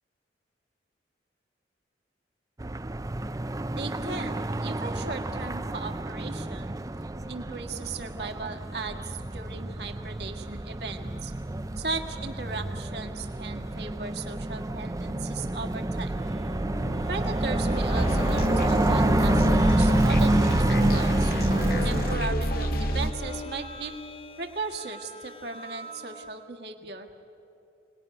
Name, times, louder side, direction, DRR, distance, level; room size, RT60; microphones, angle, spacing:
sound 1, 2.6-22.2, right 1 dB, 20° right, 0.5 m, -28 dB
voice 1, 3.8-6.7 7.3-11.3 11.8-16.2 17.1-21.3 21.8-23.9 24.4-27.1, right 4 dB, 60° right, 3 dB, 1.6 m, -37 dB
sound 2, 16.2-26.4, left 1 dB, 30° left, 0.8 m, -40 dB
sound 3, 17.9-23.1, equal, 55° left, 1.6 m, -27 dB
25.5 x 19.5 x 9.7 m, 2.8 s
head